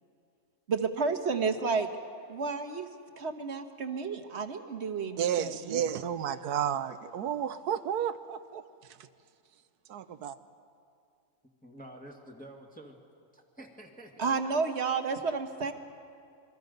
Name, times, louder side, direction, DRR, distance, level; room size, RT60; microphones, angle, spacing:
voice 1, 0.7-1.9 2.3-2.9 3.2-5.8 14.2-15.7, right 5 dB, 45° right, 7 dB, 1.4 m, -31 dB
voice 2, 5.2-8.6 9.9-10.4, right 9 dB, 85° right, 12 dB, 1.3 m, -32 dB
voice 3, 11.6-13.0 13.3-14.3, right 1 dB, 5° left, 0 dB, 1.6 m, -49 dB
27.0 x 22.0 x 5.3 m, 2.3 s
omnidirectional pair, 1.6 m